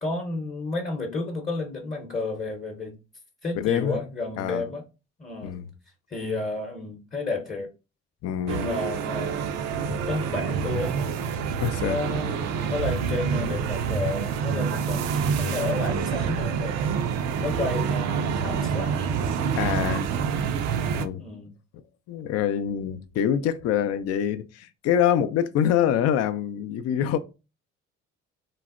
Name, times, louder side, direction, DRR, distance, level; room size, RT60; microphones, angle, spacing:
voice 1, 0.0-2.9 3.4-4.8 5.2-5.5 6.1-7.7 8.5-9.4 10.0-11.0 11.8-16.9 17.4-19.2 21.2-21.5, left 3 dB, 25° left, 0.8 m, -31 dB
voice 2, 3.6-4.0 4.4-4.6 5.4-5.7 8.2-8.7 9.8-10.0 11.6-12.0 19.5-20.1 20.9-21.2 22.1-27.2, left 9 dB, 60° left, 0.4 m, -25 dB
sound 1, 8.5-21.0, right 6 dB, 65° right, 0.5 m, -27 dB
3.8 x 2.0 x 2.4 m
supercardioid pair, 75°, 29 cm